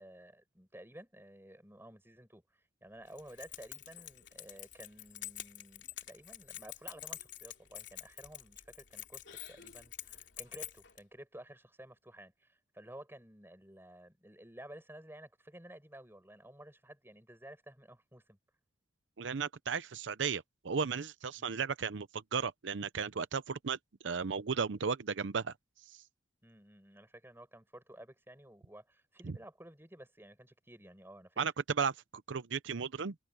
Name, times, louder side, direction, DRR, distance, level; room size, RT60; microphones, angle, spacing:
voice 1, 0.0-18.4 21.4-21.6 26.4-31.4, right 1 dB, 15° right, 6.2 m, -53 dB
Keys jangling, 3.1-11.0, left 13 dB, 70° left, 3.2 m, -47 dB
voice 2, 19.2-23.8 24.0-25.5 25.9-26.0 31.4-31.5 31.8-33.1, right 6 dB, 85° right, 0.6 m, -35 dB
head